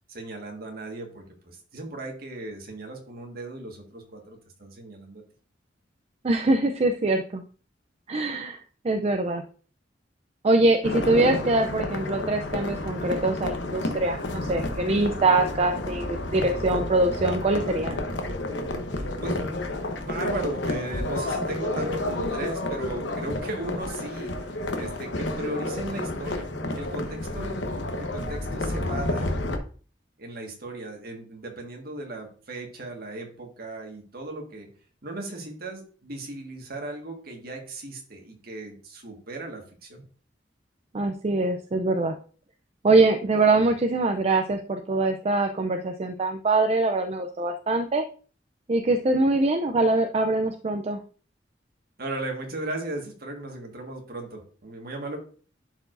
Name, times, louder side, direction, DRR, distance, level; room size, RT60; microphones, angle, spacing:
voice 1, 0.1-5.2 11.2-11.4 18.9-27.6 28.0-29.4 30.2-34.7 35.0-40.0 43.3-43.6 52.0-55.2, right 2 dB, 55° right, 2 dB, 1.7 m, -37 dB
voice 2, 6.2-7.4 8.1-8.6 8.8-9.4 10.4-18.0 40.9-42.1 42.8-48.0 48.7-51.0, right 2 dB, 35° right, 4 dB, 0.5 m, -23 dB
sound 1, 10.8-29.6, left 1 dB, 80° left, 1.0 m, -30 dB
11.0 x 4.6 x 2.6 m, 0.40 s
head